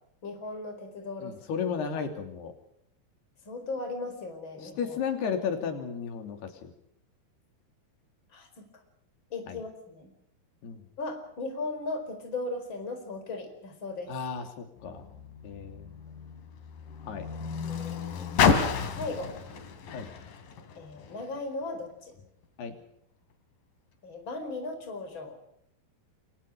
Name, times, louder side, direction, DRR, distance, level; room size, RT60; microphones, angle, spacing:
voice 1, 0.2-1.4 3.5-5.0 8.3-8.6 9.3-10.1 11.0-14.1 17.6-18.0 19.0-19.3 20.8-22.1 24.0-25.4, left 3 dB, 30° left, 5 dB, 5.3 m, -37 dB
voice 2, 1.2-2.6 4.6-6.7 9.5-9.6 10.6-10.9 14.1-15.1 15.4-15.9 17.1-17.3 19.9-20.1 22.6-22.7, left 6 dB, 80° left, 6 dB, 4.9 m, -34 dB
Car, 14.8-21.4 22.2-22.3, left 6 dB, 60° left, 4.0 m, -31 dB
28.5 x 24.5 x 5.0 m, 0.74 s
omnidirectional pair, 4.6 m